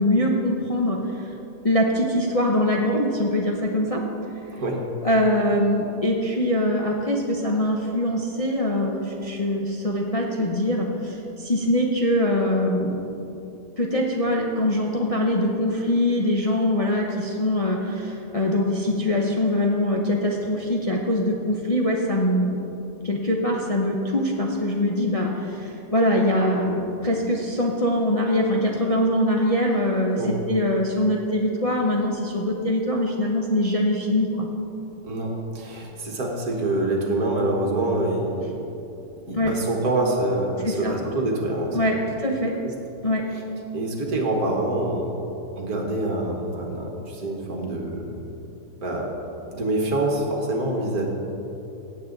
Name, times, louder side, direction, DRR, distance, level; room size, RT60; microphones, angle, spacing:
voice 1, 0.0-1.3 1.6-4.0 5.0-13.0 13.8-22.6 23.0-30.2 30.5-34.5 39.3-39.5 40.6-40.9 41.7-42.5 43.0-43.3, left 1 dB, 30° left, -1 dB, 0.6 m, -23 dB
voice 2, 4.5-4.8 30.1-30.3 35.0-38.6 39.3-41.8 42.6-42.7 43.7-45.1 45.6-48.2 48.8-49.1 49.5-51.0, right 2 dB, 65° right, 0 dB, 2.0 m, -26 dB
16.5 x 7.9 x 4.0 m, 3.0 s
omnidirectional pair, 1.7 m